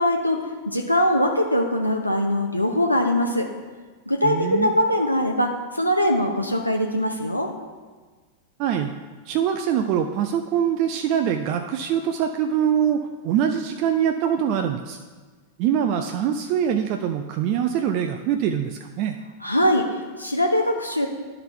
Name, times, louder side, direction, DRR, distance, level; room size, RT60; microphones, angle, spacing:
voice 1, 0.0-3.5 4.1-7.5 19.4-21.1, left 1 dB, 90° left, 1 dB, 0.6 m, -22 dB
voice 2, 4.2-4.7 8.6-8.9 9.3-15.0 15.6-19.2, right 9 dB, 45° right, 6 dB, 0.4 m, -23 dB
11.5 x 3.9 x 4.5 m, 1.4 s
figure-of-eight pair, 90°, 0 cm